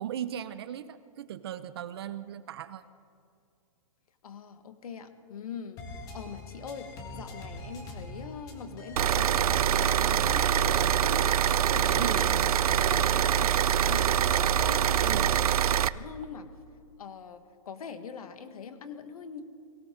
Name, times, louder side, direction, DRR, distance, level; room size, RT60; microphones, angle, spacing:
voice 1, 0.0-2.8 12.0-12.3 15.0-15.3, right 10 dB, 45° right, 14 dB, 0.6 m, -37 dB
voice 2, 4.2-15.4 15.9-16.5 17.0-19.4, left 6 dB, 80° left, 8 dB, 1.7 m, -42 dB
sound 1, 5.8-15.4, left 1 dB, 20° left, 1.8 m, -42 dB
sound 2, 9.0-15.9, right 10 dB, 90° right, 0.5 m, -24 dB
22.5 x 16.5 x 3.9 m, 2.4 s
hypercardioid pair, 170°, 18 cm